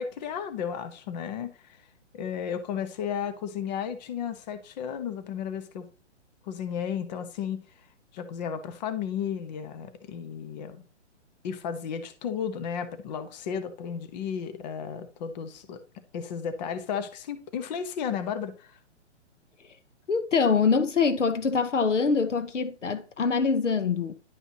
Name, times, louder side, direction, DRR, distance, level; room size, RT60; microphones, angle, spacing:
voice 1, 0.0-1.8 2.1-5.9 6.5-7.6 8.1-10.8 11.4-15.8 16.1-18.8, left 7 dB, 35° left, 1.1 m, -33 dB
voice 2, 20.1-24.1, left 5 dB, 85° left, 1.1 m, -24 dB
11.0 x 5.4 x 2.8 m
hypercardioid pair, 135°, 36 cm